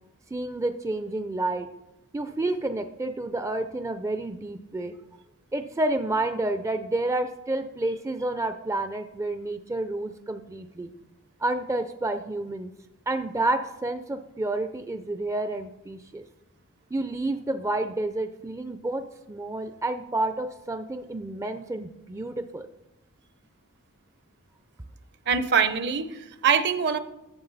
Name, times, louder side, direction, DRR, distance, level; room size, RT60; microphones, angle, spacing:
voice 1, 0.3-1.7 2.1-4.9 5.5-10.9 11.4-12.7 13.1-16.2 16.9-22.7, right 2 dB, 15° right, 9 dB, 0.4 m, -29 dB
voice 2, 25.3-27.0, right 6 dB, 50° right, 12 dB, 0.6 m, -23 dB
10.5 x 7.5 x 4.0 m, 0.94 s
head